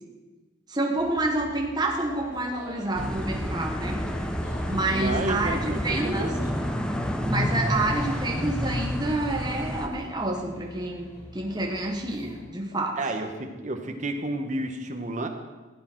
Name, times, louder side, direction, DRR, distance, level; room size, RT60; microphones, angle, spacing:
voice 1, 0.7-4.0 4.7-6.3 7.2-11.1 11.3-13.0, right 2 dB, 25° right, 0 dB, 1.3 m, -28 dB
sound 1, 1.0-12.4, equal, 40° left, 3.8 m, -45 dB
sound 2, 2.9-9.9, equal, 5° left, 0.8 m, -29 dB
voice 2, 4.9-6.3 13.0-15.3, right 2 dB, 40° right, 5 dB, 1.1 m, -31 dB
15.5 x 8.6 x 4.6 m, 1.3 s
head